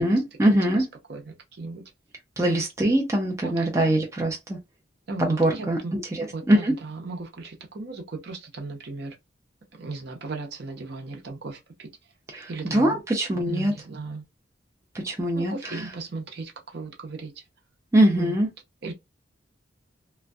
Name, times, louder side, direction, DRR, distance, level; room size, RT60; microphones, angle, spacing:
voice 1, 0.0-0.8 2.4-4.6 5.2-6.7 12.3-13.7 15.0-15.8 17.9-18.5, right 1 dB, 15° right, 0.5 m, -23 dB
voice 2, 0.8-1.8 2.4-2.6 3.4-3.9 5.1-6.0 6.3-9.2 9.7-11.9 12.5-13.0 13.5-14.2 15.3-17.3 18.1-18.4 18.8-18.9, right 3 dB, 60° right, 0.7 m, -36 dB
2.5 x 2.2 x 2.2 m
head